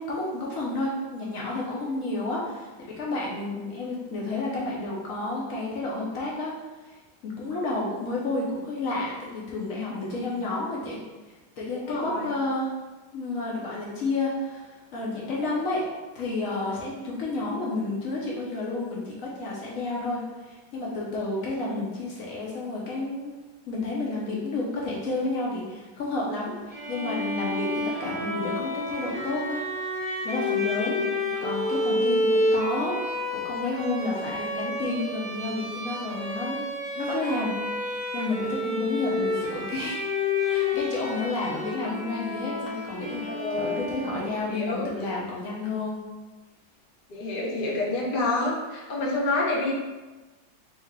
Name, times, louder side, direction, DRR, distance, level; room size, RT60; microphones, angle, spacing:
voice 1, 0.0-6.5 6.9-7.0 7.2-11.0 11.3-12.7 13.1-15.9 16.1-23.3 23.7-36.7 36.9-37.5 37.8-40.0 40.4-46.0, left 2 dB, 70° left, -4 dB, 0.8 m, -31 dB
voice 2, 11.9-12.2 21.5-21.9 30.7-31.1 43.3-43.9 44.4-44.9 47.1-49.7, left 2 dB, 85° left, -4 dB, 0.4 m, -28 dB
Bowed string instrument, 26.7-44.5, left 2 dB, 5° left, 0.6 m, -30 dB
3.4 x 2.6 x 3.6 m, 1.2 s
omnidirectional pair, 2.1 m